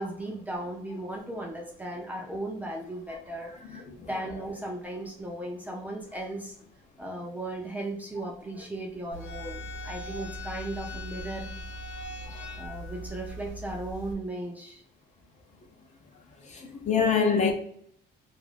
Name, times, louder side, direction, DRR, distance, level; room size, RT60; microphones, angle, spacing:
voice 1, 0.0-6.5 7.0-11.5 12.6-14.8 16.6-16.7, right 1 dB, 10° right, 0.5 m, -36 dB
voice 2, 3.7-4.1 12.2-12.4 16.5-17.5, left 6 dB, 40° left, 0.6 m, -26 dB
sound 1, 9.1-14.1, equal, 90° left, 0.8 m, -40 dB
2.5 x 2.2 x 3.2 m
cardioid pair, 135°, 19 cm